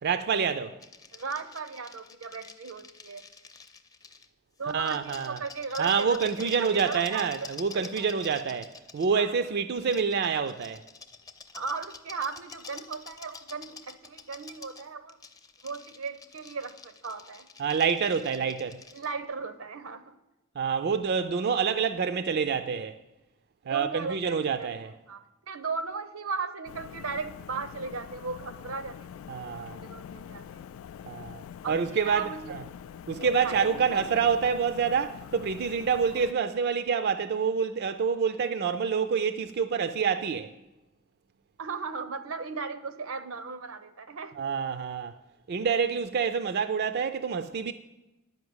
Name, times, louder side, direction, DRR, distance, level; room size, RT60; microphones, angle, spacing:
voice 1, 0.0-0.8 4.7-5.4 5.8-10.8 17.6-18.8 20.6-23.0 23.7-24.9 29.3-29.8 31.1-32.6 33.1-40.5 44.3-45.1 45.5-47.7, right 6 dB, 50° right, 0.4 m, -27 dB
sound 1, 0.8-4.3 4.7-9.1 9.9-19.1, left 5 dB, 20° left, 0.6 m, -48 dB
voice 2, 1.1-3.2 4.6-8.1 9.1-9.3 11.5-15.2 15.6-17.5 18.9-20.1 23.6-24.7 25.1-29.1 29.4-30.4 31.6-32.5 33.4-34.2 41.6-44.3, right 4 dB, 80° right, 0.8 m, -37 dB
sound 2, 26.7-36.3, left 8 dB, 75° left, 0.3 m, -44 dB
10.5 x 5.3 x 7.9 m
head